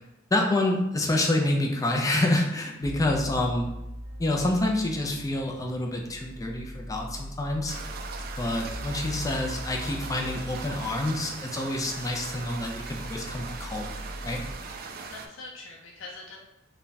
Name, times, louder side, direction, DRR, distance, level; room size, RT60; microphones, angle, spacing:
voice 1, 0.3-3.7 4.2-7.8 8.4-13.9 14.2-14.4, left 1 dB, 20° left, 1 dB, 0.4 m, -27 dB
sound 1, 2.8-14.5, equal, 35° right, 0.9 m, -40 dB
sound 2, 7.7-15.3, right 5 dB, 50° right, 0.4 m, -40 dB
voice 2, 8.9-9.5 9.9-10.1 15.1-16.4, left 3 dB, 85° left, -1 dB, 0.5 m, -44 dB
3.5 x 2.2 x 4.0 m, 0.91 s
head